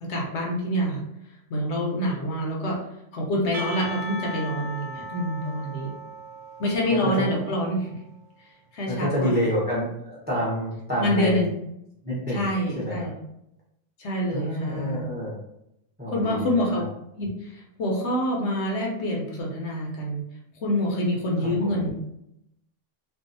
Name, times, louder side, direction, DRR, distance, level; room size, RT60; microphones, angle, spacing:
voice 1, 0.0-1.0 1.5-2.8 3.1-5.9 6.6-7.9 8.7-9.3 11.0-11.5 12.3-13.1 14.0-15.1 16.1-16.8 17.2-20.2 20.6-21.9, equal, 65° left, -2 dB, 0.9 m, -26 dB
Percussion / Church bell, 3.5-7.9, right 1 dB, 75° right, 0.9 m, -38 dB
voice 2, 6.9-7.3 8.9-11.4 12.0-12.4 12.8-13.1 14.3-15.4 16.0-16.8 21.6-21.8, equal, 10° right, -5 dB, 0.5 m, -28 dB
2.6 x 2.3 x 2.5 m, 0.81 s
omnidirectional pair, 1.3 m